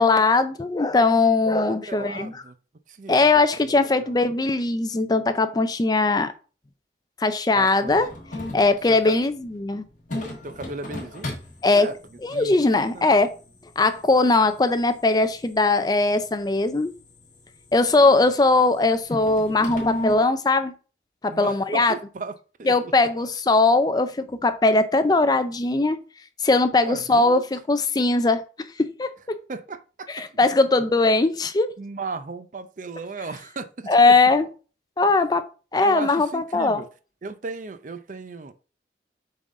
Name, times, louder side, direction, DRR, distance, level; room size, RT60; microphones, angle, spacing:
voice 1, 0.0-2.4 3.1-6.3 7.2-8.1 8.5-9.8 11.6-11.9 12.2-13.3 13.8-16.9 17.7-20.7 21.2-21.9 22.7-26.0 26.4-29.4 30.1-31.7 33.9-34.5 35.0-35.4 35.7-36.8, left 3 dB, 20° left, 0.4 m, -20 dB
voice 2, 1.5-2.5 2.9-3.1 3.7-4.1 7.5-7.9 8.9-9.1 10.4-11.4 11.8-11.9 12.3-13.2 18.0-18.2 21.3-22.9 26.8-27.4 29.5-30.4 31.8-34.1 35.8-36.9 37.2-38.5, right 3 dB, 45° right, 0.5 m, -36 dB
sound 1, 7.9-20.1, left 1 dB, 45° left, 1.7 m, -38 dB
7.3 x 3.9 x 3.7 m
head